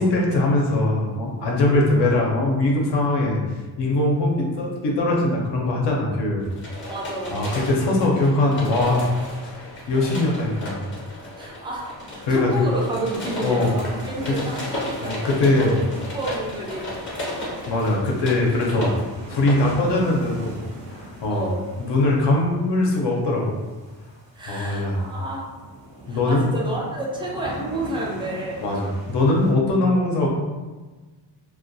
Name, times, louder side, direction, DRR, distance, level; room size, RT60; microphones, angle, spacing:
voice 1, 0.0-3.4 3.8-6.5 7.3-9.1 9.4-10.9 11.2-11.3 12.2-12.6 13.4-13.7 15.0-15.7 17.7-19.0 19.3-20.6 20.9-21.4 21.8-23.6 24.5-25.0 26.1-26.4 28.6-30.3, left 2 dB, 70° left, -1 dB, 0.6 m, -21 dB
sound 1, 6.4-19.7, left 1 dB, 25° left, 0.6 m, -34 dB
voice 2, 6.9-7.5 11.4-16.9 17.2-17.6 21.3-21.6 24.3-25.4 26.1-28.7, right 1 dB, 15° right, -4 dB, 0.3 m, -30 dB
sound 2, 11.9-29.5, right 1 dB, 75° right, 0.9 m, -42 dB
2.2 x 2.1 x 2.6 m, 1.3 s
wide cardioid pair, 145°, 44 cm